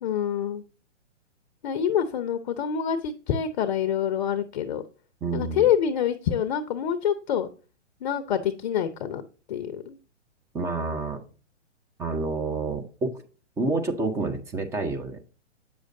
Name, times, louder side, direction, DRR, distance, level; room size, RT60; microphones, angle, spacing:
voice 1, 0.0-0.6 1.6-4.8 5.3-7.5 8.0-9.2 9.5-10.0, left 9 dB, 40° left, 11 dB, 0.6 m, -26 dB
voice 2, 5.2-5.7 10.5-11.2 12.0-13.1 13.6-15.2, right 3 dB, 10° right, 5 dB, 0.6 m, -28 dB
8.3 x 6.2 x 2.6 m, 0.37 s
figure-of-eight pair, 125°, 36 cm